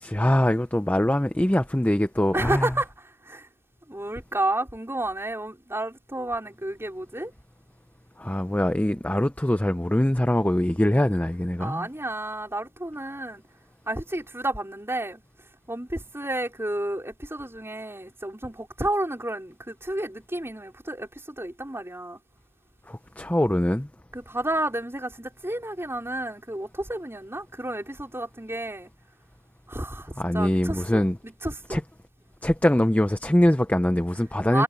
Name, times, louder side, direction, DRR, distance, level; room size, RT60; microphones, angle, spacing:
voice 1, 0.0-2.6 8.2-11.9 22.9-23.9 30.2-31.2 31.7-31.8 32.4-34.6, left 1 dB, 5° left, 0.6 m, -23 dB
voice 2, 2.3-3.5 3.9-7.3 11.6-13.4 13.9-15.2 15.7-22.2 24.1-28.9 29.7-31.8 34.5-34.6, right 1 dB, 10° right, 4.8 m, -31 dB
head